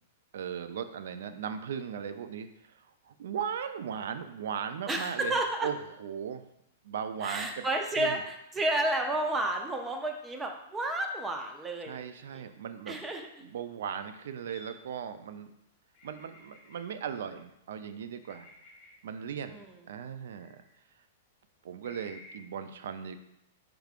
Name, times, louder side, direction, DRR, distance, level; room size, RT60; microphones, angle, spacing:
voice 1, 0.3-2.5 3.1-6.4 6.8-7.6 8.0-8.2 11.9-13.0 13.4-15.5 16.0-18.5 19.0-19.6 19.9-20.6 21.6-23.2, right 7 dB, 75° right, 10 dB, 0.3 m, -37 dB
voice 2, 4.9-5.7 7.2-8.2 8.6-12.0 12.3-12.4 12.9-13.5 19.5-19.7, right 1 dB, 10° right, 4 dB, 0.5 m, -31 dB
sound 1, 14.4-14.8 15.9-17.1 18.2-19.2 20.4-20.7 21.8-22.4, left 2 dB, 30° left, 1.1 m, -54 dB
4.6 x 3.4 x 2.4 m, 0.81 s
hypercardioid pair, 145°, 0 cm